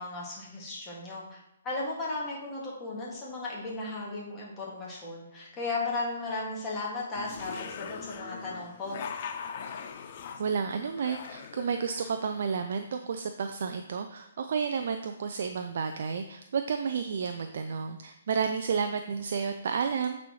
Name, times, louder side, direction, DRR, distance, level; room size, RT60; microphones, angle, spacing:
voice 1, 0.0-1.4 1.6-9.0, left 2 dB, 20° left, -4 dB, 1.9 m, -35 dB
sound 1, 7.2-12.7, left 7 dB, 45° left, 0.5 m, -41 dB
voice 2, 10.4-20.2, right 6 dB, 60° right, 7 dB, 0.4 m, -31 dB
8.9 x 4.2 x 3.1 m, 0.86 s
hypercardioid pair, 145°, 0 cm